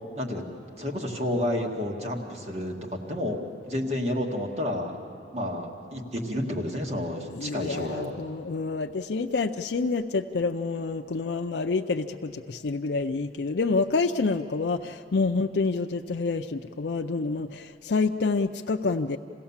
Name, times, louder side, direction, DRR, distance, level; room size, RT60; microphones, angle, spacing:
voice 1, 0.2-0.5 0.8-3.4 3.7-5.0 5.3-8.2, left 1 dB, 40° right, 1 dB, 1.9 m, -30 dB
voice 2, 7.3-19.2, left 4 dB, 70° left, 5 dB, 0.5 m, -28 dB
27.5 x 16.5 x 7.2 m, 2.8 s
head